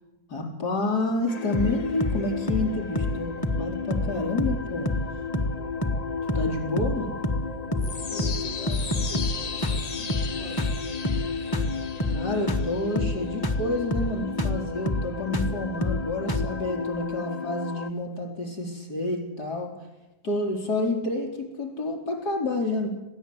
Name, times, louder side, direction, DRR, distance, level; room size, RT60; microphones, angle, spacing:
voice 1, 0.3-4.9 6.3-7.1 12.1-19.7 20.2-22.9, left 2 dB, 75° left, 1 dB, 4.8 m, -29 dB
sound 1, 1.3-17.9, left 6 dB, 40° left, 0.6 m, -34 dB
sound 2, 1.5-1.7 2.0-2.2 2.5-2.7 3.0-3.2 3.4-3.6 3.9-4.1 4.4-4.6 4.9-5.1 5.3-5.6 5.8-6.0 6.3-6.5 6.8-7.0 7.2-7.5 7.7-7.9 8.2-8.4 8.7-9.4 9.6-9.8 10.1-10.3 10.6-10.8 11.0-11.3 11.5-11.7 12.0-12.2 12.5-12.7 13.0-13.2 13.4-13.6 13.9-14.1 14.4-14.6 14.9-15.1 15.3-15.5 15.8-16.0 16.3-16.5, left 1 dB, 15° left, 1.3 m, -26 dB
voice 2, 7.6-10.7, left 2 dB, 45° right, -1 dB, 6.2 m, -44 dB
21.0 x 16.0 x 8.2 m, 1.0 s
omnidirectional pair, 1.7 m